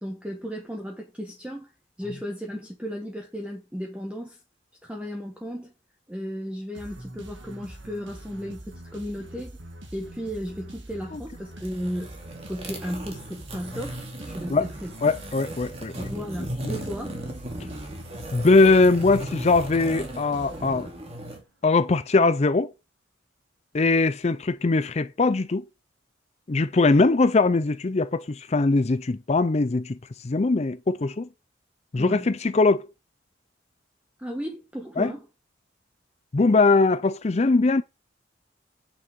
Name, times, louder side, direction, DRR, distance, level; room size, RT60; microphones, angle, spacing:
voice 1, 0.0-1.7 2.0-4.4 4.8-5.7 6.1-9.6 9.9-12.1 12.5-14.9 15.9-17.2 32.0-32.3 34.2-35.2, equal, 5° right, 1.3 m, -35 dB
sound 1, 6.7-21.3, right 1 dB, 80° right, 1.8 m, -44 dB
sound 2, 11.5-21.4, right 1 dB, 35° right, 2.5 m, -37 dB
voice 2, 15.0-16.1 18.3-20.9 21.6-22.7 23.7-25.6 26.5-31.3 31.9-32.9 35.0-35.1 36.3-37.8, left 3 dB, 35° left, 0.5 m, -21 dB
9.3 x 6.2 x 5.2 m
head